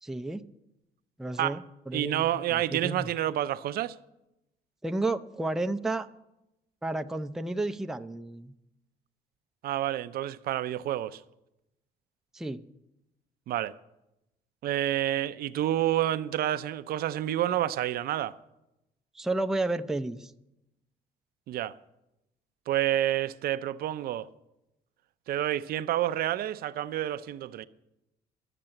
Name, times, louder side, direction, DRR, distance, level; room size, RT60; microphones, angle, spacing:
voice 1, 0.0-0.4 1.2-3.1 4.8-6.1 6.8-8.5 12.3-12.6 19.1-20.3, right 2 dB, 5° right, 0.5 m, -32 dB
voice 2, 1.9-3.9 9.6-11.2 13.5-13.7 14.6-18.4 21.5-21.7 22.7-24.3 25.3-27.7, right 12 dB, 65° right, 0.5 m, -29 dB
12.0 x 6.8 x 8.8 m
cardioid pair, 110°, 17 cm